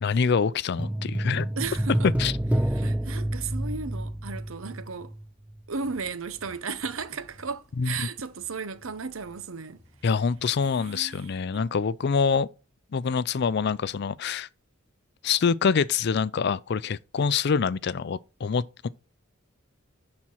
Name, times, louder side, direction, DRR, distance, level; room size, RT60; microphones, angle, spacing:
voice 1, 0.0-1.5 2.2-2.3 7.8-8.1 10.0-12.5 12.9-14.5 15.2-18.9, left 5 dB, 50° left, 0.4 m, -25 dB
sound 1, 0.8-5.2 5.5-5.6, right 1 dB, 5° right, 0.4 m, -28 dB
voice 2, 1.6-2.1 2.7-5.1 5.7-9.8 10.6-11.7, right 5 dB, 75° right, 0.9 m, -35 dB
sound 2, 5.7-12.4, left 1 dB, 35° right, 3.4 m, -56 dB
11.0 x 4.3 x 5.8 m
head